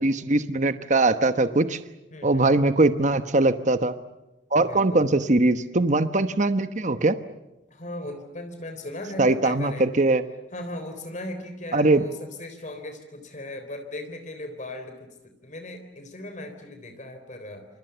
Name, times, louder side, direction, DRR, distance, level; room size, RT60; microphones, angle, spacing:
voice 1, 0.0-1.8 2.2-3.9 4.5-7.1 9.2-10.2 11.7-12.0, right 2 dB, 40° right, 10 dB, 1.1 m, -21 dB
voice 2, 2.1-2.6 4.6-5.2 7.7-9.9 10.5-17.7, left 1 dB, 40° left, 7 dB, 3.8 m, -38 dB
29.0 x 26.5 x 6.9 m, 0.97 s
head